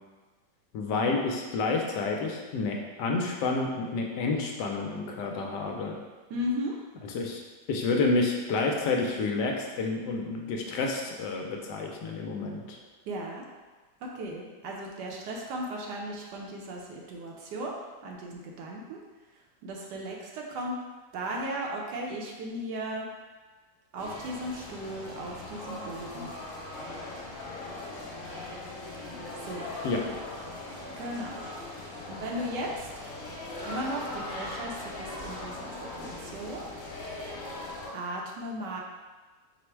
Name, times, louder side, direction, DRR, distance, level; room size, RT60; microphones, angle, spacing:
voice 1, 0.7-5.9 7.0-7.4 7.7-12.8 29.8-30.0, left 3 dB, 75° left, 1 dB, 1.2 m, -29 dB
voice 2, 6.3-6.7 13.1-13.4 14.0-19.0 19.6-20.8 21.1-23.1 23.9-26.3 29.4-29.7 31.0-31.4 32.1-32.9 33.6-36.7 37.9-38.8, equal, 75° right, -1 dB, 1.2 m, -36 dB
sound 1, 24.0-37.9, left 2 dB, 50° left, 1.4 m, -40 dB
4.8 x 2.1 x 4.4 m, 1.3 s
omnidirectional pair, 1.9 m